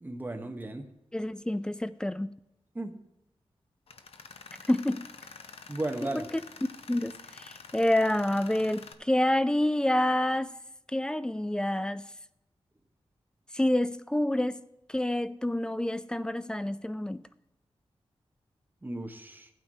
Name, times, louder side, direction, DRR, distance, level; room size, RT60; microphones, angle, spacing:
voice 1, 0.0-0.9 2.7-2.9 5.7-6.3 18.8-19.5, right 2 dB, 20° right, 0.9 m, -35 dB
voice 2, 1.1-2.3 4.7-5.1 6.1-6.2 6.9-10.5 10.9-12.0 13.5-17.2, left 1 dB, 10° left, 0.3 m, -28 dB
Tools, 3.9-8.9, left 5 dB, 70° left, 0.7 m, -48 dB
15.0 x 9.0 x 2.7 m
wide cardioid pair, 130°, 10 cm